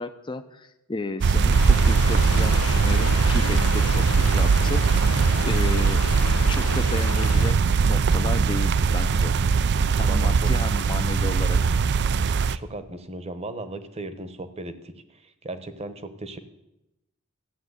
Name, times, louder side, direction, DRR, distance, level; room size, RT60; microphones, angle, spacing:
voice 1, 0.0-6.0 6.5-9.4 10.0-11.6, left 2 dB, 20° left, 7 dB, 0.6 m, -33 dB
sound 1, 1.2-12.6, right 5 dB, 50° right, 0.4 m, -21 dB
sound 2, 1.5-7.5, left 6 dB, 90° left, 0.7 m, -33 dB
voice 2, 10.1-10.5 12.5-16.4, right 2 dB, 30° right, 11 dB, 1.0 m, -37 dB
14.0 x 7.3 x 9.7 m, 0.89 s
head